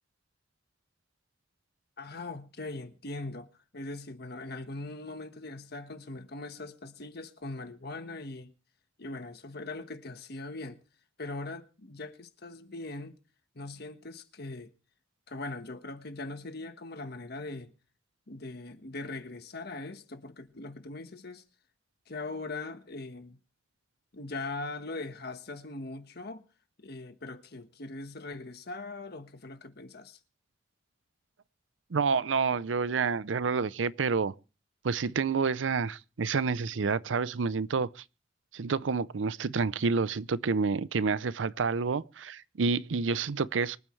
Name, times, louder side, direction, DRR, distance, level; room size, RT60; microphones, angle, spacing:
voice 1, 2.0-3.5 3.7-8.5 9.0-10.8 11.2-13.2 13.5-14.7 15.3-17.7 18.3-21.4 22.1-23.4 24.1-26.4 26.8-30.2, left 2 dB, 55° left, 1.3 m, -40 dB
voice 2, 31.9-34.3 34.8-38.0 38.5-43.8, right 5 dB, 80° right, 0.6 m, -29 dB
24.5 x 9.1 x 3.2 m
head